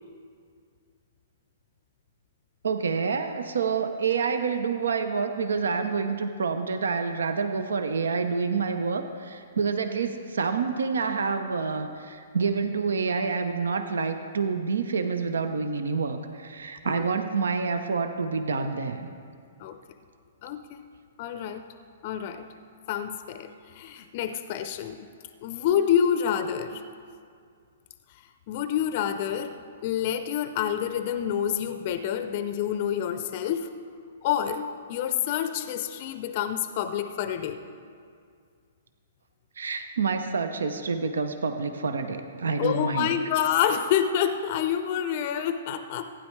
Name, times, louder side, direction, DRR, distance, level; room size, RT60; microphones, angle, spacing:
voice 1, 2.6-19.1 39.6-43.1, right 5 dB, 75° right, 8 dB, 0.7 m, -28 dB
voice 2, 20.4-20.8 21.2-21.6 22.0-22.5 22.9-25.1 25.4-26.8 28.5-29.5 29.8-33.7 34.2-37.6 42.6-46.1, left 9 dB, 45° left, 10 dB, 0.5 m, -28 dB
15.5 x 9.9 x 3.2 m, 2.2 s
hypercardioid pair, 120°, 0 cm